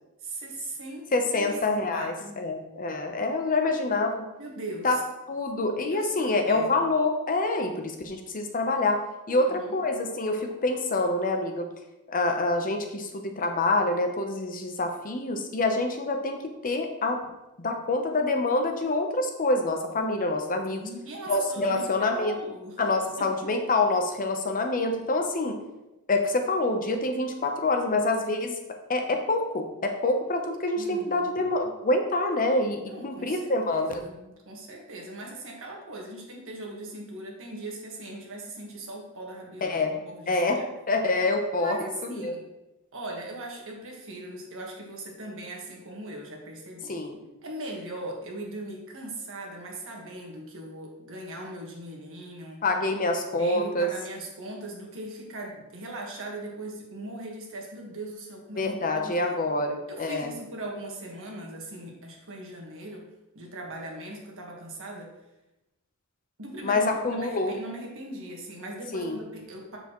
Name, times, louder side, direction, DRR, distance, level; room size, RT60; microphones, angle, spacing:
voice 1, 0.2-1.6 1.9-2.4 4.4-5.0 5.9-6.7 9.3-9.8 20.7-22.8 23.2-23.5 30.8-31.5 32.9-40.7 41.6-42.4 42.9-47.0 47.4-52.6 53.3-58.7 58.9-59.4 59.9-63.1 63.3-65.1 66.4-69.8, right 1 dB, 60° right, 0 dB, 1.6 m, -39 dB
voice 2, 1.1-4.3 4.8-5.0 5.3-9.0 9.3-11.7 12.1-17.2 17.6-20.8 21.3-22.3 22.8-25.6 26.1-28.6 28.9-34.0 39.6-39.9 40.3-40.6 40.9-42.3 46.9-47.2 52.6-53.9 58.5-60.3 66.6-67.5 68.9-69.2, left 2 dB, 40° left, 4 dB, 0.8 m, -26 dB
7.2 x 6.8 x 3.1 m, 0.97 s
head